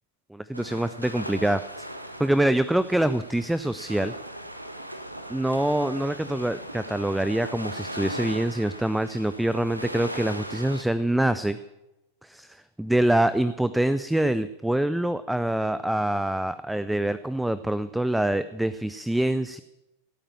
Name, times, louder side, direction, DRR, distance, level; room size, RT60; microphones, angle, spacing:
voice 1, 0.3-1.9 2.2-4.1 5.3-11.6 12.2-19.6, right 1 dB, 5° right, 14 dB, 0.5 m, -25 dB
sound 1, 0.5-10.8, right 1 dB, 85° right, 1.3 m, -38 dB
16.5 x 8.8 x 8.6 m, 0.97 s
figure-of-eight pair, 90°, 0 cm